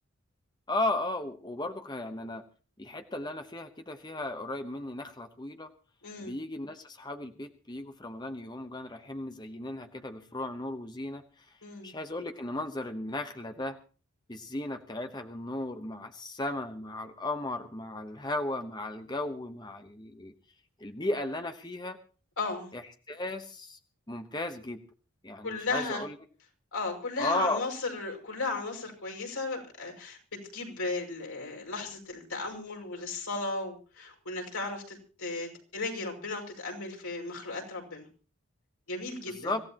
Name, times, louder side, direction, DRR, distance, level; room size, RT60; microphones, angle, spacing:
voice 1, 0.7-2.4 2.8-5.7 6.2-11.6 11.8-13.8 14.3-20.3 20.8-22.0 22.7-22.8 23.1-23.8 24.1-24.8 25.2-26.2 27.2-27.7 39.3-39.6, left 2 dB, 20° left, 6 dB, 1.0 m, -35 dB
voice 2, 6.0-6.3 11.6-11.9 22.4-22.7 25.4-26.0 26.7-38.1 38.9-39.5, left 3 dB, 90° left, 1 dB, 6.0 m, -35 dB
25.5 x 16.0 x 3.0 m, 0.38 s
head